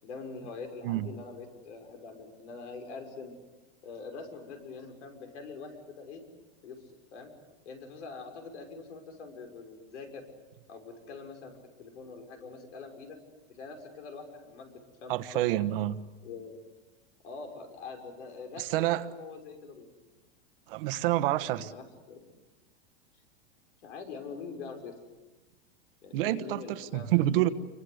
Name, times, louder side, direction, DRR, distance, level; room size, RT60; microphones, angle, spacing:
voice 1, 0.0-3.4 3.8-6.2 6.6-6.8 7.1-7.3 7.6-10.2 10.7-13.2 13.5-15.6 16.2-16.6 17.2-19.9 21.4-22.3 23.8-25.0 26.0-27.5, left 4 dB, 90° left, 5 dB, 6.3 m, -44 dB
voice 2, 15.1-15.9 18.6-19.0 20.7-21.7 26.1-27.5, right 15 dB, 55° right, 12 dB, 1.3 m, -28 dB
27.0 x 24.5 x 8.1 m, 1.1 s
supercardioid pair, 160°, 34 cm